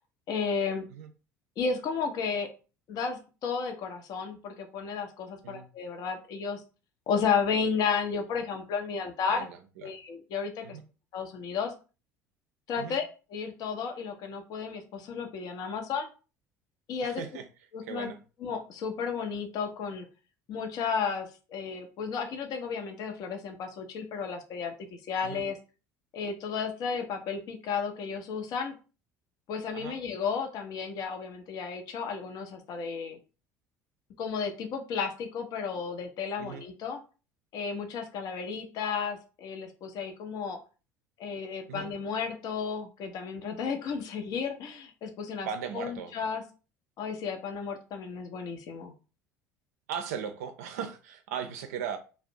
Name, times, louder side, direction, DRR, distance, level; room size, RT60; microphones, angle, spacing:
voice 1, 0.3-0.9 1.6-2.5 2.9-6.6 7.1-9.5 9.8-10.8 11.1-11.7 12.7-13.0 13.3-16.1 16.9-17.2 17.7-18.1 18.4-20.1 20.5-24.7 25.0-25.6 26.1-28.7 29.5-33.2 34.2-37.0 37.5-40.6 41.2-45.5 45.7-46.4 47.0-48.9, left 6 dB, 45° left, 0.5 m, -33 dB
voice 2, 9.3-9.9 10.6-10.8 12.8-13.0 17.0-17.4 17.8-18.2 25.2-25.4 29.7-30.0 36.4-36.6 41.7-41.9 45.4-46.1 49.9-52.0, right 8 dB, 65° right, 0.4 m, -37 dB
2.4 x 2.0 x 2.7 m
figure-of-eight pair, 60°, 9 cm